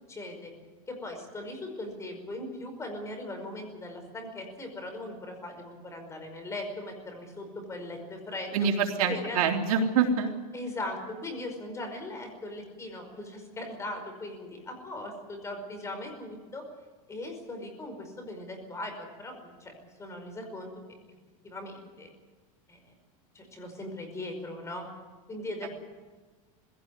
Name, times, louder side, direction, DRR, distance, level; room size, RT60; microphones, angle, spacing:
voice 1, 0.1-0.5 0.9-8.5 9.0-9.4 10.5-16.6 17.1-19.7 20.0-20.7 21.4-22.1 22.7-22.9 23.3-24.9 25.3-25.7, left 1 dB, 15° left, 5 dB, 5.2 m, -39 dB
voice 2, 8.5-10.3 25.6-25.7, right 6 dB, 85° right, 2 dB, 3.3 m, -25 dB
20.5 x 17.0 x 9.7 m, 1.3 s
supercardioid pair, 140°, 18 cm